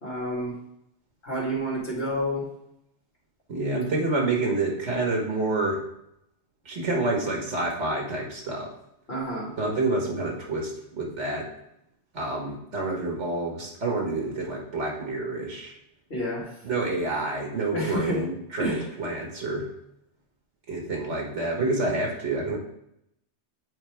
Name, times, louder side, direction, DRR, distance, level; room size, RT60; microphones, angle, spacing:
voice 1, 0.0-0.5 1.2-2.4 9.1-9.5 16.1-16.5 17.7-18.2 18.6-18.8, equal, 65° left, -5 dB, 2.5 m, -29 dB
voice 2, 3.5-5.8 6.7-8.7 9.6-11.5 12.1-15.7 16.6-19.7 20.7-22.6, right 2 dB, 85° right, -1 dB, 1.8 m, -28 dB
8.7 x 4.3 x 3.5 m, 0.78 s
omnidirectional pair, 1.2 m